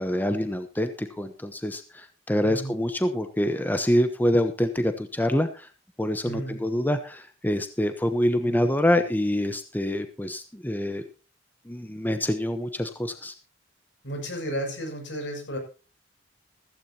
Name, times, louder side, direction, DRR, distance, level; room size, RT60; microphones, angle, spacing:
voice 1, 0.0-5.7 6.0-11.0 11.7-13.3, left 1 dB, 10° left, 8 dB, 1.0 m, -26 dB
voice 2, 2.4-2.7 6.2-6.7 8.4-9.1 14.0-15.6, equal, 70° left, 3 dB, 6.8 m, -34 dB
15.5 x 15.0 x 2.9 m, 0.33 s
head